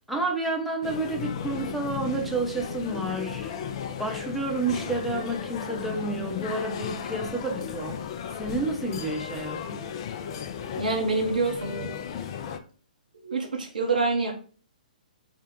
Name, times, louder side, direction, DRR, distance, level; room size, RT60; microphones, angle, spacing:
voice 1, 0.1-3.5 4.0-9.8, right 2 dB, ahead, -2 dB, 0.7 m, -30 dB
sound 1, 0.8-12.6, left 8 dB, 40° left, 0.3 m, -35 dB
voice 2, 10.8-12.0 13.2-14.3, right 3 dB, 70° right, 1 dB, 0.7 m, -26 dB
3.7 x 2.1 x 3.6 m, 0.40 s
figure-of-eight pair, 120°, 5 cm